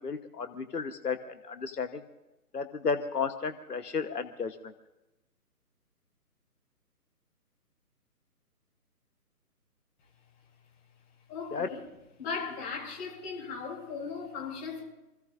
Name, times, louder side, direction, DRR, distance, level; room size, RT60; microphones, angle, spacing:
voice 1, 0.0-2.0 2.5-4.6 11.5-11.7, left 5 dB, 80° left, 8 dB, 1.3 m, -33 dB
voice 2, 11.3-11.8 12.2-14.8, left 5 dB, 15° left, -4 dB, 5.3 m, -37 dB
28.5 x 15.5 x 2.6 m, 0.98 s
figure-of-eight pair, 145°, 47 cm